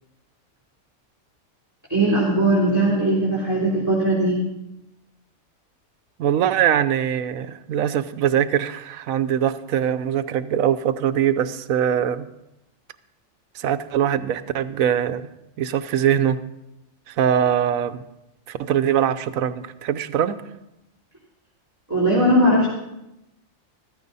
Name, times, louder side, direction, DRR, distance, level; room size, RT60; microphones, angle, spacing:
voice 1, 1.9-4.4 21.9-22.7, right 1 dB, 10° right, -8 dB, 3.2 m, -19 dB
voice 2, 6.2-12.2 13.5-15.3 15.6-16.4 17.1-18.0 18.5-20.4, right 9 dB, 85° right, 12 dB, 1.1 m, -22 dB
14.5 x 13.5 x 4.1 m, 0.89 s
omnidirectional pair, 1.4 m